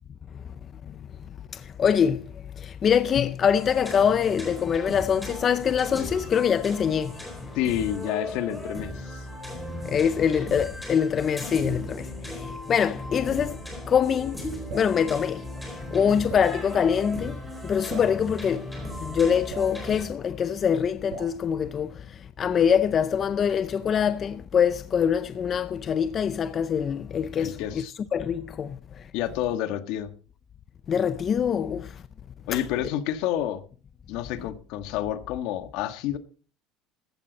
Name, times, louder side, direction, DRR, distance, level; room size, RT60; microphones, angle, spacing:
voice 1, 1.5-2.3 2.6-7.3 9.8-13.6 13.9-14.4 14.7-18.7 19.0-22.0 22.4-27.8 28.1-28.8 30.9-31.9 32.5-32.6, left 7 dB, 30° left, 0.5 m, -24 dB
sound 1, 3.5-20.0, left 1 dB, 5° left, 4.2 m, -37 dB
voice 2, 7.5-9.3 27.4-27.9 29.1-30.1 32.5-33.6 34.1-36.2, left 11 dB, 65° left, 1.5 m, -29 dB
Drip, 14.7-15.0 16.3-16.5 17.9-18.2 19.5-19.8 21.1-21.4, right 6 dB, 70° right, 4.4 m, -38 dB
15.0 x 12.5 x 4.0 m
cardioid pair, 160°, 0 cm